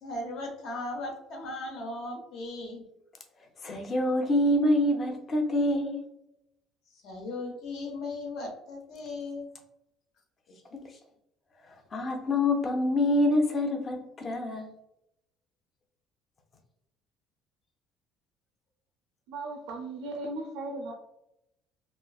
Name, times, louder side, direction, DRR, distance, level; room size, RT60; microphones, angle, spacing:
voice 1, 0.0-2.8 7.0-9.5, left 2 dB, 65° left, 2 dB, 0.8 m, -37 dB
voice 2, 3.6-6.0 11.9-14.7, left 1 dB, 35° left, 2 dB, 0.5 m, -26 dB
voice 3, 19.3-20.9, right 2 dB, 85° right, 1 dB, 0.4 m, -37 dB
3.0 x 2.4 x 2.3 m, 0.83 s
cardioid pair, 110°, 0 cm